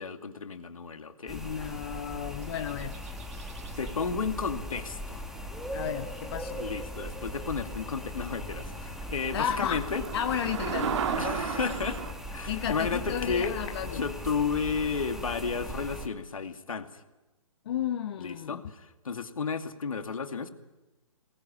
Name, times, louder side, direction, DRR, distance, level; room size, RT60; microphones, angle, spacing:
voice 1, 0.0-1.4 3.8-5.3 6.6-10.0 11.2-12.0 12.3-13.6 13.9-16.9 18.2-20.5, left 5 dB, 75° left, 6 dB, 2.4 m, -32 dB
voice 2, 1.3-3.0 5.7-6.6 9.3-11.0 12.5-14.1 17.6-18.6, left 9 dB, 50° left, 6 dB, 1.2 m, -33 dB
sound 1, 1.3-16.1, equal, ahead, 2.0 m, -39 dB
sound 2, 2.4-3.9 7.5-7.6 8.1-8.2 8.4-12.1, right 7 dB, 60° right, 1.7 m, -35 dB
24.0 x 19.5 x 8.7 m, 1.1 s
hypercardioid pair, 140°, 18 cm